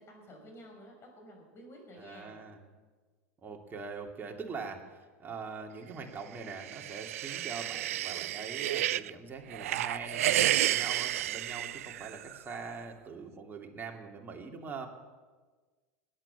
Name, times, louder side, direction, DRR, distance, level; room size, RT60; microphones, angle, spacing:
voice 1, 0.0-2.4, equal, 30° left, 1 dB, 6.0 m, -51 dB
voice 2, 2.0-2.6 3.4-14.9, right 4 dB, 25° right, 1 dB, 2.7 m, -43 dB
sound 1, 6.4-9.1 9.5-12.4, right 13 dB, 75° right, 0.4 m, -31 dB
20.0 x 9.0 x 7.4 m, 1.4 s
hypercardioid pair, 95°, 8 cm